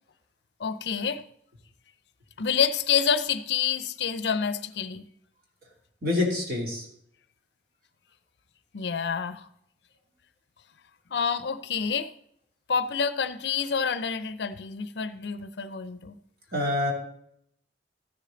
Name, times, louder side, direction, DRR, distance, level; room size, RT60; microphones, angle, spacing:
voice 1, 0.6-1.2 2.4-5.0 8.7-9.5 11.1-12.1 12.7-16.2, left 6 dB, 65° left, 0.5 m, -28 dB
voice 2, 6.0-6.8 16.5-16.9, left 2 dB, 55° right, 2.7 m, -26 dB
13.5 x 6.7 x 3.8 m
head